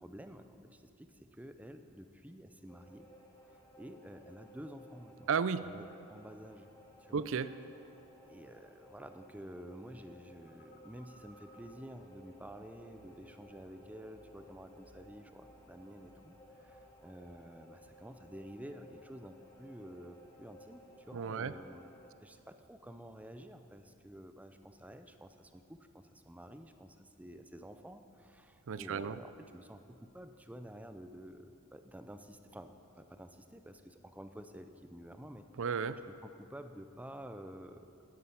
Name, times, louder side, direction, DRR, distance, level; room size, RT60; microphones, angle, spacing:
voice 1, 0.0-3.1 3.5-5.3 5.6-6.7 7.0-7.2 8.2-21.9 22.2-35.4 36.1-37.9, equal, 5° right, 8 dB, 0.5 m, -50 dB
sound 1, 2.7-22.1, equal, 10° left, 1.8 m, -59 dB
voice 2, 5.3-5.7 7.1-7.6 21.1-21.5 28.7-29.2 35.6-36.0, right 6 dB, 65° right, 14 dB, 0.5 m, -33 dB
Telephone, 10.5-13.5 13.8-14.4 14.8-15.1, right 1 dB, 50° left, 1.3 m, -62 dB
sound 2, 11.5-18.8, equal, 35° right, 2.0 m, -67 dB
9.7 x 9.6 x 8.5 m, 2.7 s
head